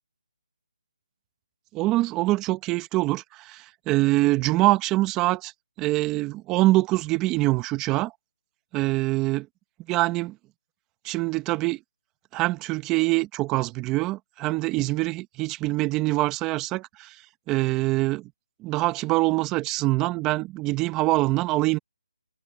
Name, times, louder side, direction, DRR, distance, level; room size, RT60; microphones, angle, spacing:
voice 1, 1.7-5.5 5.8-8.1 8.7-9.5 9.9-10.3 11.0-11.8 12.3-17.1 17.5-18.3 18.6-21.8, right 19 dB, 15° right, 1.4 m, -24 dB
figure-of-eight pair, 160°, 3 cm